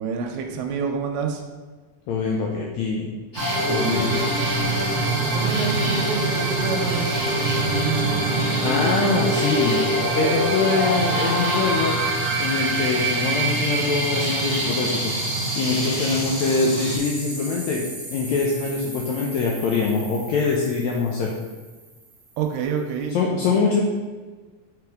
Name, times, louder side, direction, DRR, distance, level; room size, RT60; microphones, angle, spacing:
voice 1, 0.0-1.4 5.3-7.2 7.8-8.3 22.4-23.2, right 5 dB, 90° right, 3 dB, 2.3 m, -28 dB
voice 2, 2.1-3.1 3.7-4.2 8.6-9.8 10.1-12.0 12.4-15.1 15.6-17.8 18.1-21.3 23.1-23.8, left 4 dB, 85° left, -1 dB, 1.6 m, -23 dB
sound 1, 3.3-17.0, right 2 dB, 30° left, 0.4 m, -27 dB
sound 2, 3.4-21.8, right 1 dB, 50° right, 1.1 m, -27 dB
5.8 x 5.4 x 3.5 m, 1.3 s
omnidirectional pair, 3.9 m